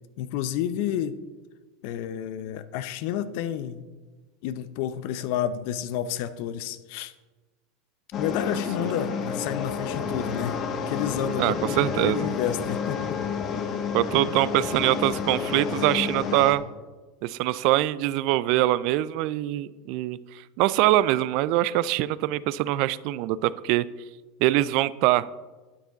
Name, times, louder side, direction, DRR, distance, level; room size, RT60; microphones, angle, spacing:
voice 1, 0.2-1.2 1.8-3.9 4.4-7.1 8.2-10.6 10.9-13.2, left 10 dB, 60° left, 13 dB, 0.7 m, -30 dB
sound 1, 8.1-16.5, left 6 dB, 45° left, 1.2 m, -30 dB
voice 2, 11.4-12.3 13.9-16.6 17.2-23.9 24.4-25.3, right 16 dB, 55° right, 18 dB, 0.4 m, -23 dB
12.5 x 9.2 x 4.0 m, 1.3 s
hypercardioid pair, 85°, 0 cm